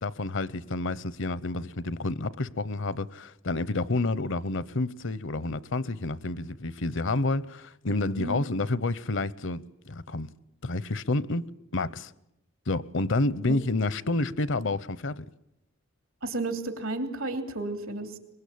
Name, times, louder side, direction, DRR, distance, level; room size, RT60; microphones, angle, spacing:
voice 1, 0.0-10.3 10.6-11.5 11.7-12.1 12.7-15.2, left 2 dB, 65° left, 0.8 m, -29 dB
voice 2, 16.2-18.1, right 2 dB, 80° right, 3.1 m, -32 dB
23.5 x 21.5 x 8.6 m
head